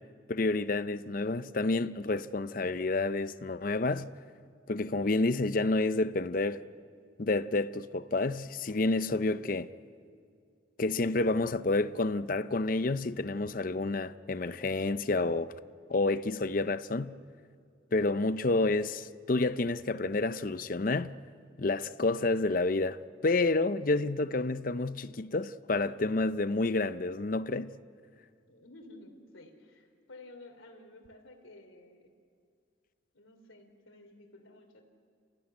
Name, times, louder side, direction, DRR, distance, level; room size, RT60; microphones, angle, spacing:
voice 1, 0.3-4.1 4.7-6.6 7.2-9.7 10.8-15.5 15.9-17.1 17.9-21.1 21.6-27.7, left 2 dB, 45° left, 0.6 m, -29 dB
voice 2, 28.5-32.1 33.1-34.8, left 2 dB, 85° left, 3.3 m, -53 dB
29.5 x 15.5 x 9.7 m
head